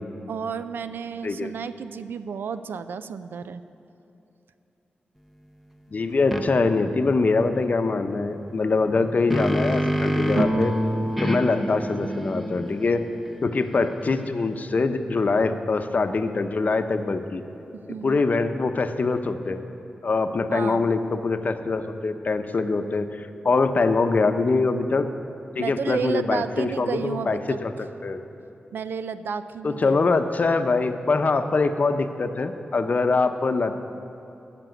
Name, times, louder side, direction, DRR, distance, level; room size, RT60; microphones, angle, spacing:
voice 1, 0.3-3.6 17.9-18.2 20.5-20.9 25.6-27.6 28.7-30.5, right 6 dB, 90° right, 12 dB, 0.4 m, -32 dB
voice 2, 5.9-10.8 11.2-13.0 13.4-17.4 18.0-19.6 20.0-25.1 25.5-27.7 28.0-28.2 29.6-33.7, left 3 dB, 50° left, 8 dB, 0.7 m, -23 dB
sound 1, 6.3-6.5 8.9-10.6 11.2-14.5, equal, ahead, 0.8 m, -28 dB
sound 2, 10.3-13.9, right 1 dB, 40° right, 1.4 m, -29 dB
14.0 x 6.1 x 9.1 m, 2.9 s
cardioid pair, 70°, 3 cm